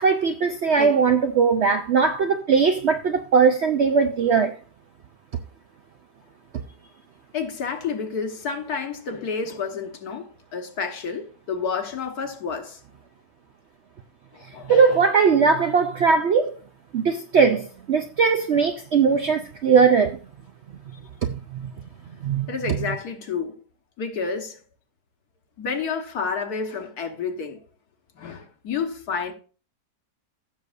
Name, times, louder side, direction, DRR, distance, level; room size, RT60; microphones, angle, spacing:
voice 1, 0.0-4.6 14.7-16.5 16.9-20.2 22.2-22.5, right 5 dB, 65° right, 0.6 m, -19 dB
voice 2, 7.3-12.8 14.3-15.1 22.5-23.6 24.0-24.6 25.6-27.6 28.2-29.3, left 5 dB, 65° left, 1.8 m, -30 dB
16.0 x 6.7 x 2.5 m
omnidirectional pair, 1.8 m